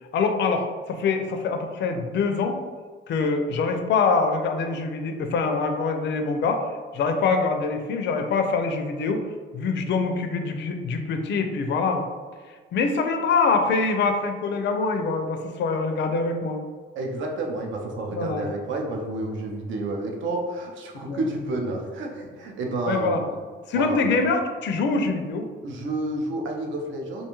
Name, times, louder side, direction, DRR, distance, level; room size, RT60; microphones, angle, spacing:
voice 1, 0.1-2.6 3.1-6.7 6.9-9.2 9.5-12.0 12.7-16.6 18.1-18.5 21.1-21.2 22.9-23.2 23.7-25.5, left 4 dB, 65° left, 5 dB, 0.4 m, -24 dB
voice 2, 17.0-23.4 23.7-24.0 25.6-27.3, right 2 dB, 75° right, 1 dB, 0.6 m, -30 dB
2.5 x 2.3 x 2.9 m, 1.5 s
cardioid pair, 90°, 20 cm